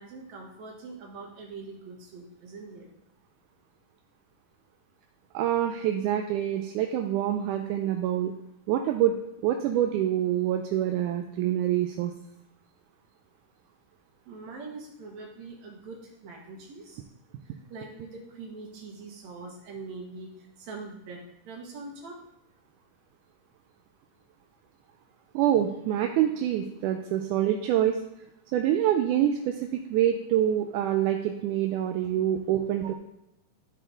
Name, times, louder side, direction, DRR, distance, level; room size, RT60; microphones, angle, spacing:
voice 1, 0.0-2.9 14.3-17.0 17.5-20.3 20.6-21.2 21.5-22.2 32.5-32.9, right 3 dB, 60° right, -1 dB, 2.7 m, -43 dB
voice 2, 5.3-8.3 8.7-9.2 9.4-12.1 25.4-28.0 28.5-32.9, right 11 dB, 80° right, 4 dB, 2.0 m, -26 dB
13.0 x 4.3 x 3.9 m, 0.86 s
omnidirectional pair, 3.8 m